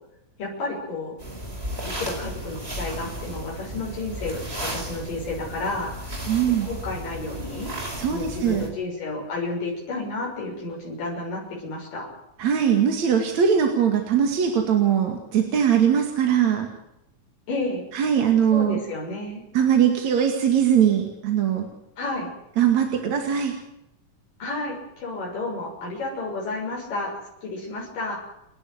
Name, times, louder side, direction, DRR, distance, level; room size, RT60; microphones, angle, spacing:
voice 1, 0.4-1.2 2.0-6.2 6.6-7.7 8.1-12.1 17.5-17.9 18.5-19.4 22.0-22.3 24.4-27.1 27.4-28.2, left 2 dB, 80° left, -3 dB, 7.8 m, -31 dB
sound 1, 1.2-8.7, right 1 dB, 15° right, 4.8 m, -34 dB
voice 2, 6.3-6.7 8.0-8.7 12.4-16.7 17.9-18.8 19.5-21.7 22.6-23.5, right 8 dB, 60° right, 3 dB, 3.4 m, -21 dB
30.0 x 12.0 x 9.5 m, 0.83 s
omnidirectional pair, 3.8 m